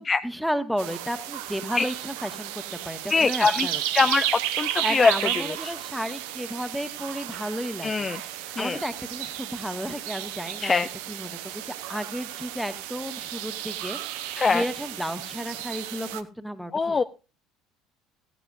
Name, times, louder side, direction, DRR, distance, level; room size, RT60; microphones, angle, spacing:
voice 1, 0.0-3.8 4.8-10.7 11.1-17.0, equal, ahead, 8 dB, 1.6 m, -33 dB
sound 1, 0.8-16.2, right 13 dB, 70° right, 0.9 m, -33 dB
voice 2, 3.1-3.7 3.9-5.7 7.8-8.2 8.6-8.8 10.6-10.9 14.4-14.6 16.7-17.0, left 4 dB, 25° left, 10 dB, 0.5 m, -23 dB
15.5 x 13.5 x 2.6 m, 0.32 s
hypercardioid pair, 65°, 0 cm